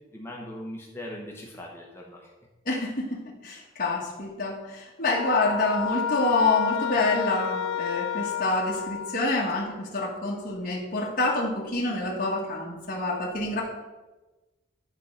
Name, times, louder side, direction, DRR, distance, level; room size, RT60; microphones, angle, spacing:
voice 1, 0.1-2.3, left 1 dB, 10° left, -2 dB, 0.9 m, -40 dB
voice 2, 2.6-13.6, left 2 dB, 45° left, -4 dB, 1.6 m, -27 dB
sound 1, 5.1-9.5, left 9 dB, 85° left, 0.4 m, -30 dB
10.5 x 3.7 x 6.5 m, 1.1 s
head